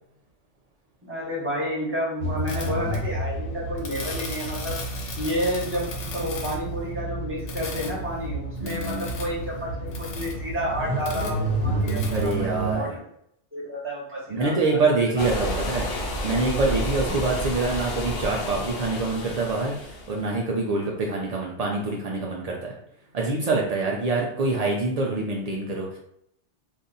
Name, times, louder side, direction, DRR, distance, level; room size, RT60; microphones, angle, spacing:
voice 1, 1.0-4.8 5.2-13.0 13.5-14.8 15.1-15.2, equal, 10° right, -5 dB, 0.9 m, -30 dB
sound 1, 2.2-12.8, right 1 dB, 75° left, 1.0 m, -30 dB
voice 2, 8.6-9.1 12.1-12.9 14.3-15.9 16.2-22.7 23.1-26.0, right 3 dB, 75° right, -1 dB, 0.3 m, -25 dB
sound 2, 15.2-20.2, equal, 55° left, 0.7 m, -30 dB
2.6 x 2.4 x 3.8 m, 0.72 s
omnidirectional pair, 1.2 m